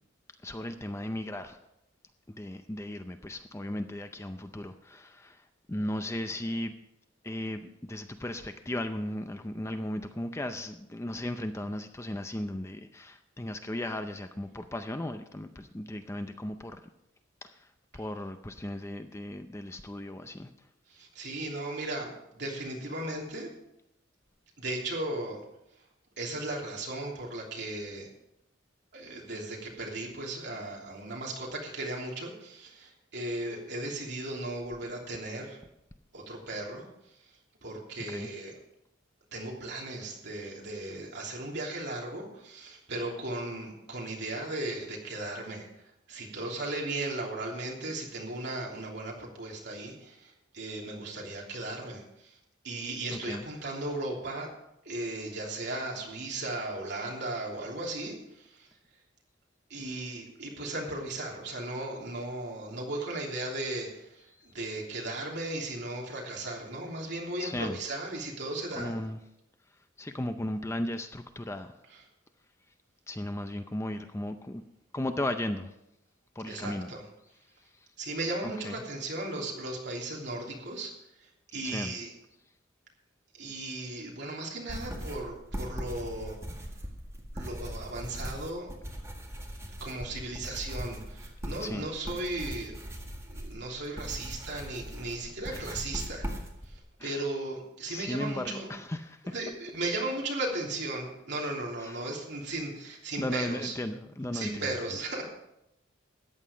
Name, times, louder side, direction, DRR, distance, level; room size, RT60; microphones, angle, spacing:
voice 1, 0.4-1.6 2.4-5.4 5.7-6.7 7.2-16.8 17.4-17.7 17.9-20.5 38.1-38.3 53.1-53.4 64.4-64.5 67.4-67.8 68.8-69.2 70.0-71.8 73.1-74.6 74.9-75.7 76.4-76.9 78.4-78.8 81.6-82.0 91.6-91.9 95.5-95.8 97.0-97.2 97.8-99.3 101.8-102.0 103.2-104.8, left 1 dB, 15° left, 8 dB, 0.5 m, -36 dB
voice 2, 20.9-23.5 24.6-25.4 26.2-28.1 28.9-35.6 36.1-36.8 37.6-38.6 39.3-45.7 46.1-52.4 52.6-54.5 54.8-58.7 59.7-68.9 71.9-72.0 76.5-77.0 78.0-80.9 81.2-82.1 83.3-86.4 87.3-88.7 89.8-92.8 93.2-98.7 99.3-103.8 104.3-105.2, right 2 dB, 60° right, -2 dB, 3.2 m, -36 dB
sound 1, 84.7-96.8, equal, 15° right, 1.9 m, -40 dB
14.0 x 9.6 x 5.1 m, 0.85 s
head